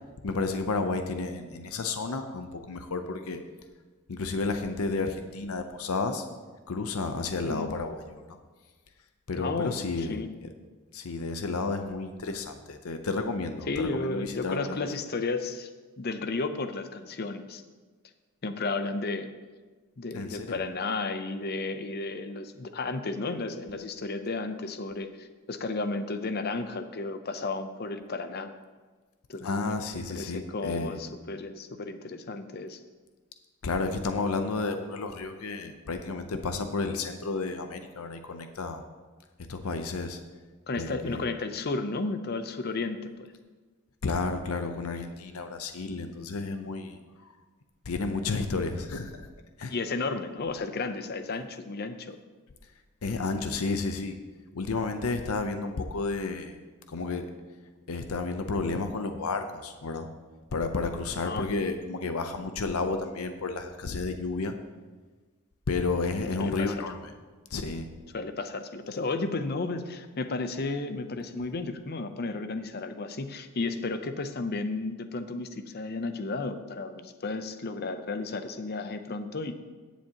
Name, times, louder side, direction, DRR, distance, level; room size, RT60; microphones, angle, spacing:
voice 1, 0.2-3.4 4.1-6.2 6.7-8.4 9.3-10.5 10.9-14.8 20.1-20.6 29.4-31.0 33.6-38.8 39.5-40.2 40.8-41.2 44.0-47.3 47.9-49.2 49.6-49.7 53.0-54.2 54.5-56.6 56.9-57.3 57.9-60.1 60.5-64.5 65.7-67.1 67.5-67.9, left 3 dB, 85° left, 7 dB, 0.7 m, -31 dB
voice 2, 9.4-10.3 13.7-15.7 16.0-17.6 18.4-19.3 20.0-28.5 29.3-32.8 40.7-43.3 49.7-52.2 61.2-61.5 66.4-66.8 68.1-79.5, left 3 dB, 45° left, 9 dB, 0.6 m, -33 dB
17.0 x 7.2 x 2.9 m, 1.4 s
head